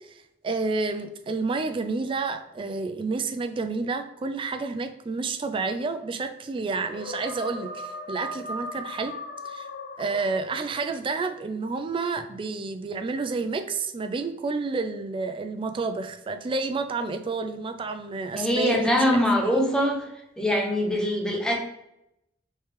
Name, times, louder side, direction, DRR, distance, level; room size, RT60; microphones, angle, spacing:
voice 1, 0.4-9.1 9.4-9.7 10.0-19.0 19.4-19.6, right 4 dB, 30° right, 7 dB, 0.3 m, -30 dB
sound 1, 6.8-10.9, left 1 dB, 65° left, 0.4 m, -37 dB
voice 2, 18.4-20.0 20.4-21.6, left 1 dB, 5° left, 0 dB, 0.6 m, -23 dB
3.2 x 3.1 x 3.2 m, 0.83 s
head